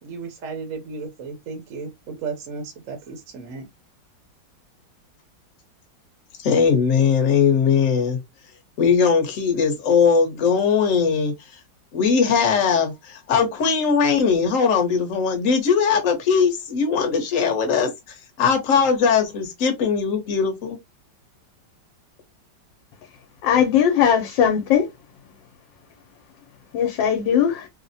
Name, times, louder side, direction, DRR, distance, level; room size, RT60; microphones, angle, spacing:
voice 1, 0.0-3.7, right 4 dB, 60° right, 0.9 m, -34 dB
voice 2, 6.4-8.2 8.8-11.3 11.9-17.9 18.4-20.8, left 6 dB, 55° left, 1.1 m, -20 dB
voice 3, 23.4-24.9 26.7-27.7, left 8 dB, 85° left, 1.3 m, -19 dB
3.3 x 2.0 x 2.6 m
omnidirectional pair, 2.0 m